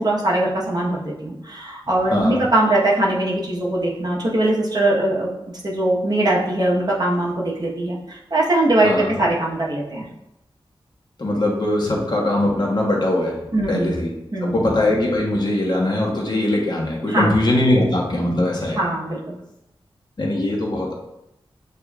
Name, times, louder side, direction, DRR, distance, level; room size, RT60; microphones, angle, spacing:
voice 1, 0.0-5.3 5.6-10.0 13.5-14.0 14.3-14.6 17.1-17.4 18.8-19.4, right 1 dB, 45° right, -4 dB, 1.0 m, -21 dB
voice 2, 2.1-2.4 8.8-9.2 11.2-13.4 13.7-14.1 14.4-18.8 20.2-21.0, left 1 dB, 50° left, -2 dB, 1.0 m, -21 dB
8.0 x 2.7 x 2.3 m, 0.87 s
wide cardioid pair, 100°, 10 cm